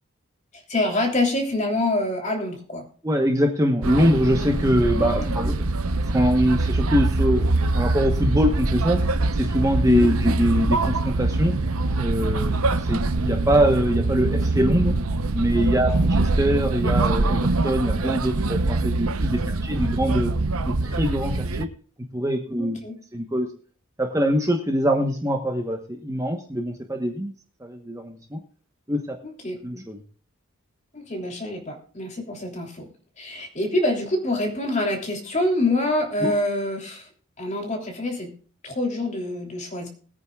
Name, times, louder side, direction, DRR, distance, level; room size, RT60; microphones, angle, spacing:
voice 1, 0.5-2.8 5.0-5.3 9.8-10.1 19.4-19.9 22.6-23.0 29.2-29.6 30.9-32.9 33.2-37.1 37.4-38.3 38.6-39.9, left 2 dB, 35° left, 2 dB, 3.2 m, -26 dB
voice 2, 3.0-5.6 6.1-9.0 9.3-11.5 12.0-14.9 15.3-20.3 20.6-21.7 22.1-22.8 23.1-23.5 24.0-27.3 27.6-28.4 28.9-29.2 29.6-30.0 36.2-36.3, equal, 15° right, 3 dB, 1.1 m, -23 dB
sound 1, 3.8-21.6, right 2 dB, 80° right, 0.8 m, -23 dB
21.5 x 9.2 x 2.4 m, 0.43 s
head